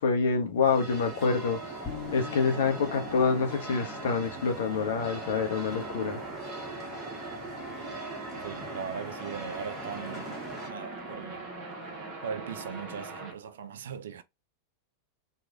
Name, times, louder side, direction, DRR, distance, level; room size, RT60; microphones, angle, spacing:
voice 1, 0.0-6.2, left 5 dB, 60° left, 0.7 m, -27 dB
sound 1, 0.6-10.7, right 1 dB, 20° right, 1.3 m, -42 dB
sound 2, 0.6-13.3, right 2 dB, 35° right, 1.0 m, -42 dB
sound 3, 1.8-7.1, left 5 dB, 30° left, 1.0 m, -45 dB
voice 2, 8.4-11.5 12.2-14.2, right 7 dB, 60° right, 0.3 m, -39 dB
3.1 x 2.4 x 2.4 m
figure-of-eight pair, 90°, 0 cm